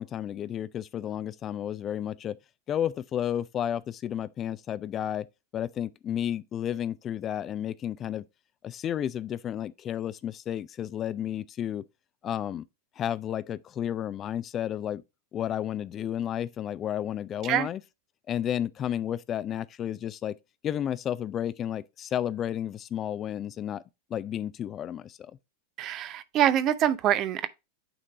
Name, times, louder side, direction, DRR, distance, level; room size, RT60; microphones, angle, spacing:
voice 1, 0.0-2.4 2.7-5.3 5.5-8.3 8.6-11.8 12.2-12.6 13.0-15.0 15.3-17.8 18.3-20.3 20.6-23.8 24.1-25.2, left 10 dB, 30° left, 0.4 m, -32 dB
voice 2, 25.8-27.5, right 11 dB, 35° right, 0.6 m, -25 dB
8.9 x 3.3 x 3.8 m
figure-of-eight pair, 90°, 0 cm